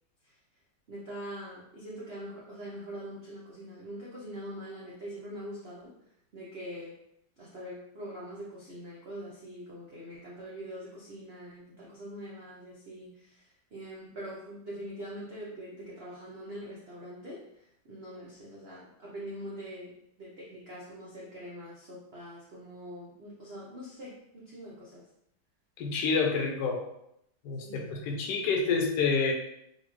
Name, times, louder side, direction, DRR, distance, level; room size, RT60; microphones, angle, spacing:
voice 1, 0.9-5.9 6.3-7.0 7.4-25.0 27.6-27.9, equal, 80° right, -6 dB, 0.5 m, -43 dB
voice 2, 25.8-26.8 27.4-29.3, left 4 dB, 70° left, 1 dB, 1.2 m, -28 dB
4.1 x 2.4 x 3.0 m, 0.76 s
omnidirectional pair, 2.1 m